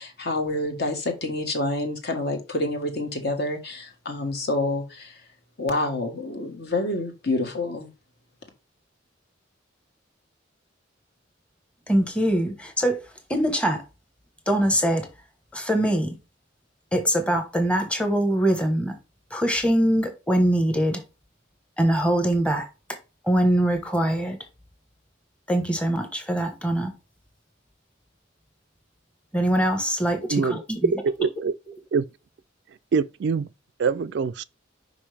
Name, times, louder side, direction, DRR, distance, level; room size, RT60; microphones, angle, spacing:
voice 1, 0.0-5.1 5.6-7.9, left 2 dB, 55° left, 1.4 m, -28 dB
voice 2, 11.9-13.0 13.3-13.8 14.5-15.1 15.5-16.2 16.9-19.0 19.3-21.0 21.8-22.7 23.2-24.4 25.5-26.9 29.3-30.9, right 1 dB, 5° left, 1.1 m, -23 dB
voice 3, 30.9-31.5 31.9-32.1 32.9-33.5 33.8-34.4, right 5 dB, 60° right, 0.3 m, -24 dB
5.3 x 5.3 x 3.3 m
head